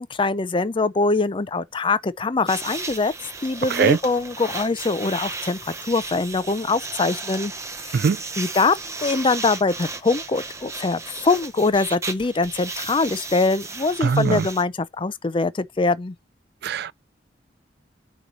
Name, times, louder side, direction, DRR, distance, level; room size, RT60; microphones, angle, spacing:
voice 1, 0.0-3.1 3.4-7.5 7.8-8.0 8.4-16.1, left 3 dB, 30° left, 0.5 m, -23 dB
sound 1, 2.5-14.6, right 3 dB, 15° right, 0.8 m, -34 dB
voice 2, 14.0-14.4 16.6-16.9, right 6 dB, 65° right, 0.4 m, -20 dB
8.9 x 3.1 x 5.4 m
head